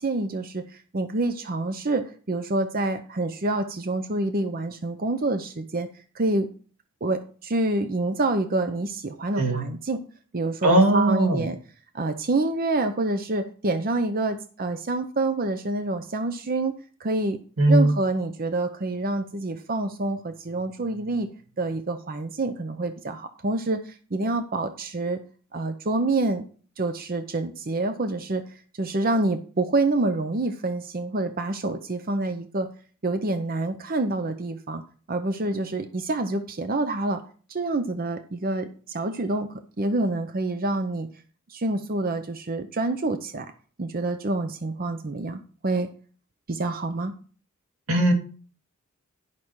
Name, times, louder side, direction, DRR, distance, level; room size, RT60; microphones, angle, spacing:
voice 1, 0.0-5.9 6.1-6.5 7.0-10.0 10.3-11.6 11.9-16.7 17.0-17.4 17.7-21.3 21.6-25.2 25.5-26.4 26.8-32.7 33.0-34.8 35.1-37.2 37.5-41.1 41.5-43.5 43.8-45.9 46.5-47.1, right 2 dB, 45° right, 8 dB, 0.7 m, -27 dB
voice 2, 10.6-11.4 17.6-17.9 47.9-48.1, right 1 dB, 90° right, 2 dB, 2.3 m, -19 dB
11.0 x 5.9 x 4.7 m, 0.41 s
head